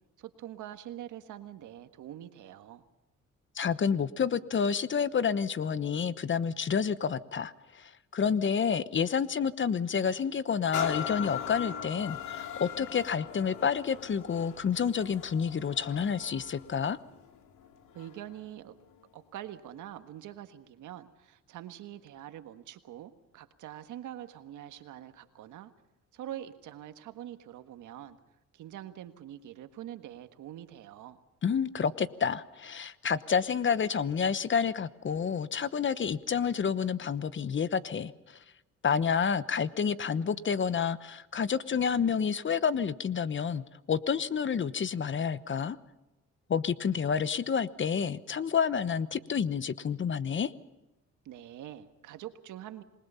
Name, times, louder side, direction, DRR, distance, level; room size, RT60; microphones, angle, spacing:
voice 1, 0.2-2.8 17.9-18.8 19.1-25.7 26.1-28.2 28.5-31.2 51.2-52.8, right 12 dB, 85° right, 9 dB, 1.6 m, -44 dB
voice 2, 3.5-17.0 31.4-38.4 38.8-45.8 46.5-50.5, left 6 dB, 40° left, 15 dB, 1.0 m, -29 dB
sound 1, 10.7-18.3 18.9-19.0, left 9 dB, 80° left, 2.4 m, -40 dB
27.0 x 20.5 x 5.6 m, 1.0 s
cardioid pair, 90°, 30 cm